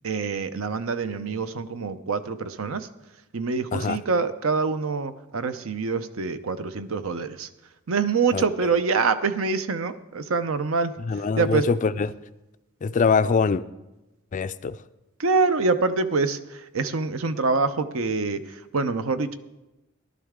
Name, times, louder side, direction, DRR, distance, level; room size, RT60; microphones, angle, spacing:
voice 1, 0.0-2.9 3.3-7.5 7.9-11.7 15.2-19.4, right 4 dB, 70° right, 11 dB, 0.7 m, -25 dB
voice 2, 11.1-12.1 12.8-13.6 14.3-14.8, left 5 dB, 35° left, 13 dB, 0.3 m, -23 dB
15.0 x 11.5 x 3.7 m, 0.99 s
head